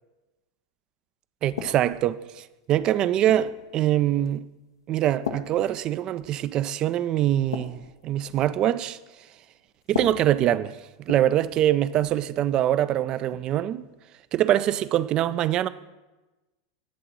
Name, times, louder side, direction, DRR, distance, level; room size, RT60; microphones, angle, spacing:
voice 1, 1.4-4.4 4.9-9.0 9.9-10.8 11.1-13.8 14.3-15.7, right 12 dB, 40° right, 0.4 m, -24 dB
sound 1, 1.6-2.1 2.7-3.6 4.3-4.5 5.2-6.4 6.7-6.9 7.3-8.6 9.8-11.6 11.9-12.2 13.3-13.5, left 6 dB, 80° left, 0.8 m, -37 dB
10.5 x 3.7 x 7.4 m
hypercardioid pair, 90°, 2 cm